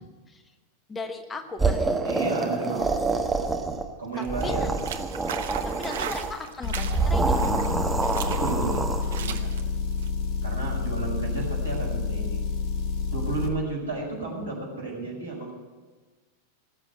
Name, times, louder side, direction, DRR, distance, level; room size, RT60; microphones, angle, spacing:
voice 1, 0.9-1.9 4.4-4.7 5.8-7.5, left 3 dB, 15° left, 7 dB, 1.2 m, -36 dB
sound 1, 1.6-3.9 4.2-6.3 6.9-9.2, right 3 dB, 10° right, 1.3 m, -26 dB
voice 2, 2.0-2.9 4.0-4.7 8.3-8.9 9.2-9.5 10.4-12.4 13.1-15.5, right 3 dB, 75° right, -2 dB, 6.0 m, -32 dB
sound 2, 4.1-10.1, right 9 dB, 60° right, 1.0 m, -37 dB
Motor vehicle (road) / Engine, 6.6-13.5, left 4 dB, 40° left, 1.4 m, -29 dB
18.5 x 7.6 x 8.0 m, 1.3 s
figure-of-eight pair, 90°, 0 cm